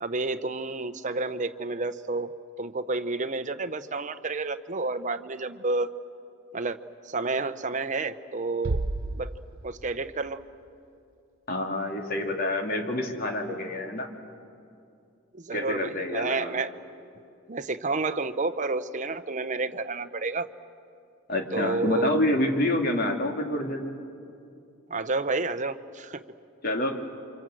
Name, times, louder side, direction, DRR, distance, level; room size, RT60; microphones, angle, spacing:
voice 1, 0.0-2.3 2.6-5.9 6.5-6.8 7.1-8.8 9.1-9.3 9.6-10.4 15.3-16.7 17.5-20.5 21.5-22.1 24.9-26.2, right 3 dB, 35° right, 10 dB, 0.8 m, -30 dB
Bass drum, 8.6-10.1, right 2 dB, 75° right, 0.8 m, -31 dB
voice 2, 11.5-14.1 15.5-16.6 21.3-23.9 26.6-27.0, left 1 dB, 45° left, 3 dB, 2.5 m, -27 dB
28.5 x 26.0 x 7.8 m, 2.5 s
head